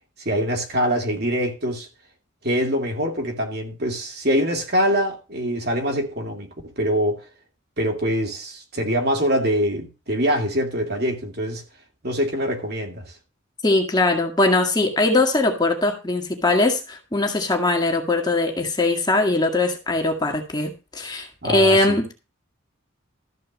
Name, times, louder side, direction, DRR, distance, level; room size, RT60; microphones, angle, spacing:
voice 1, 0.2-1.9 2.4-7.2 7.8-11.6 12.0-13.1 21.4-22.0, equal, 50° right, 2.6 m, -24 dB
voice 2, 13.6-22.1, left 2 dB, 20° left, 1.9 m, -21 dB
13.5 x 4.6 x 7.4 m
head